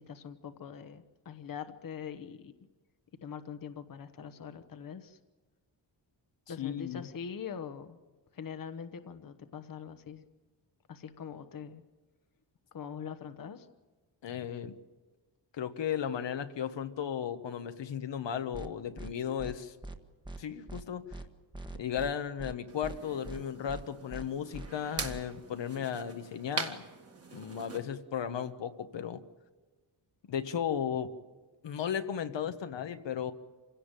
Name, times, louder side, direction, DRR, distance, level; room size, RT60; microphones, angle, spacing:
voice 1, 0.0-2.5 3.2-5.2 6.5-8.0 8.3-10.2 10.9-11.8 12.7-13.7, left 7 dB, 50° left, 10 dB, 1.1 m, -43 dB
voice 2, 6.6-7.1 14.2-14.7 15.5-19.7 20.4-21.0 21.7-26.8 27.3-29.2 30.3-31.1 31.6-33.3, left 8 dB, 75° left, 8 dB, 1.3 m, -35 dB
sound 1, 18.5-18.7 19.0-19.1 19.4-19.5 19.8-20.0 20.2-20.4 20.7-20.8 21.1-21.2 21.5-22.1 22.4-22.5 22.8-23.0 23.2-23.4 23.7-23.8 24.1-24.2 24.5-24.7 25.0-25.2, right 2 dB, 10° right, 1.3 m, -42 dB
sound 2, 22.7-27.8, right 4 dB, 35° right, 1.9 m, -42 dB
27.0 x 17.0 x 9.0 m, 1.3 s
wide cardioid pair, 170°, 43 cm